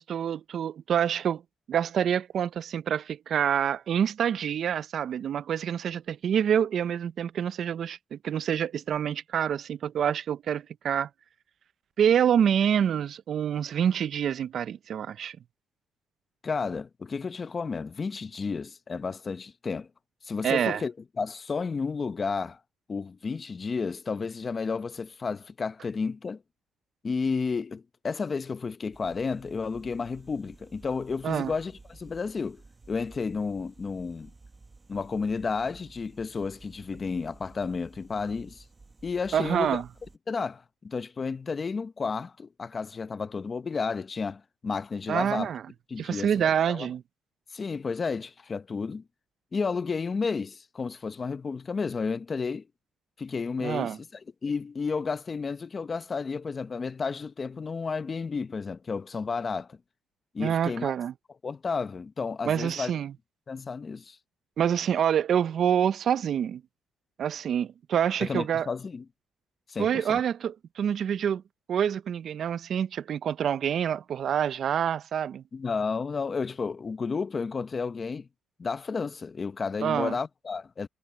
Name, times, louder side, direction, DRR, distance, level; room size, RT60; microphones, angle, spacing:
voice 1, 0.0-1.4 1.7-11.1 12.0-15.4 20.4-20.8 31.2-31.5 39.3-39.9 45.1-45.6 46.0-47.0 53.6-54.0 60.4-61.1 62.4-63.1 64.6-66.6 67.2-68.7 69.8-71.4 71.7-75.4 79.8-80.2, right 9 dB, 60° right, 0.4 m, -27 dB
voice 2, 16.4-19.9 20.2-22.6 22.9-26.4 27.0-32.6 32.9-34.3 34.9-38.6 39.0-39.8 40.3-45.5 45.9-46.9 47.5-49.0 49.5-52.6 53.2-54.0 54.4-59.8 60.3-60.9 61.4-62.9 63.5-64.2 68.2-69.0 69.7-70.2 75.5-78.3 78.6-80.9, left 5 dB, 35° left, 0.8 m, -32 dB
sound 1, 28.9-40.2, right 3 dB, 25° right, 1.2 m, -53 dB
cardioid pair, 105°, 0 cm